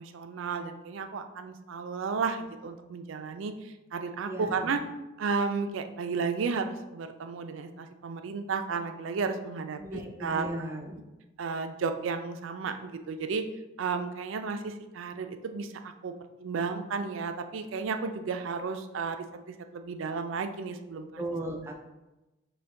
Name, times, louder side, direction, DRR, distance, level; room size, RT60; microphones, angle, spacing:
voice 1, 0.0-4.8 5.2-10.5 11.4-13.4 13.8-16.1 16.4-19.2 19.5-21.2, right 5 dB, 80° right, 8 dB, 0.4 m, -33 dB
voice 2, 4.3-4.7 9.8-11.0 21.2-21.7, right 1 dB, 15° right, 2 dB, 0.4 m, -36 dB
5.6 x 2.3 x 3.7 m, 1.0 s
head